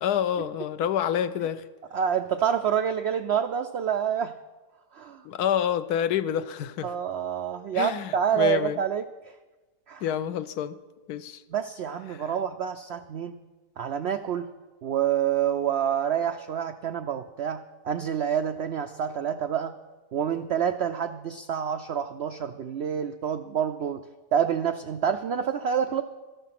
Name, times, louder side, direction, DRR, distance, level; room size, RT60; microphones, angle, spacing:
voice 1, 0.0-1.7 5.2-6.9 7.7-8.8 10.0-10.8 11.1-11.4 12.1-12.4, left 9 dB, 80° left, 1.2 m, -28 dB
voice 2, 1.9-4.3 4.9-5.2 6.8-9.0 9.9-10.0 11.5-13.4 13.8-14.5 14.8-19.7 20.1-24.0 24.3-26.0, right 8 dB, 85° right, 0.5 m, -27 dB
13.5 x 12.0 x 5.9 m
omnidirectional pair, 1.7 m